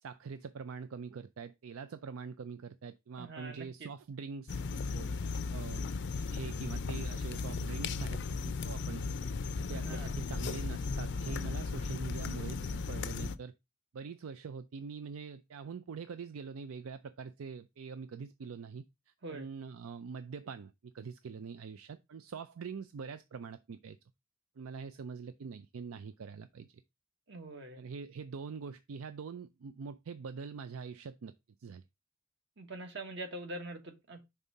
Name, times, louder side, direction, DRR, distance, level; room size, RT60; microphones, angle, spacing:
voice 1, 0.0-5.1 5.5-5.9 6.2-9.0 9.5-13.5 13.9-24.0 24.6-26.8 27.8-31.3 31.6-31.8, right 5 dB, 80° right, 0.4 m, -44 dB
voice 2, 3.2-3.9 9.7-10.1 19.2-19.5 27.3-27.8 32.6-34.2, right 2 dB, 55° right, 1.3 m, -44 dB
sound 1, 4.5-13.4, left 4 dB, 55° left, 0.5 m, -36 dB
5.4 x 3.6 x 5.3 m
head